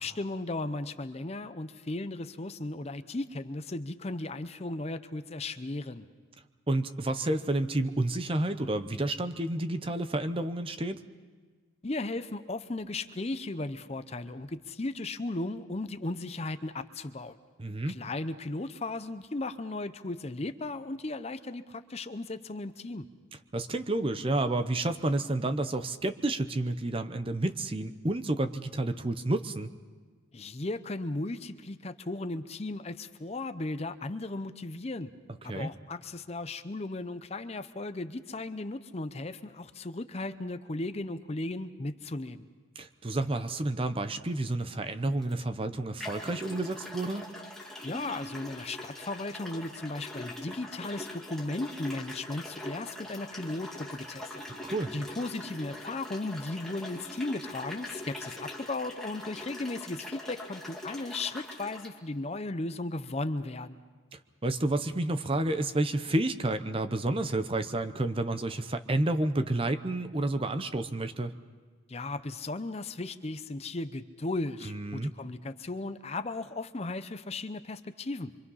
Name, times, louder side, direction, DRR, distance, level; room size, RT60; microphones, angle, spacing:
voice 1, 0.0-6.1 11.8-17.4 17.9-23.1 30.3-35.1 35.4-42.5 47.8-54.4 54.9-63.8 71.9-78.3, left 2 dB, 30° left, 11 dB, 0.6 m, -36 dB
voice 2, 6.7-11.0 17.6-18.0 23.5-29.7 35.5-35.7 42.8-47.2 54.5-54.9 64.1-71.3 74.6-75.1, right 2 dB, 25° right, 9 dB, 0.7 m, -30 dB
sound 1, 45.2-45.3 46.0-61.9, left 1 dB, ahead, 2.1 m, -42 dB
25.5 x 25.0 x 5.6 m, 1.5 s
head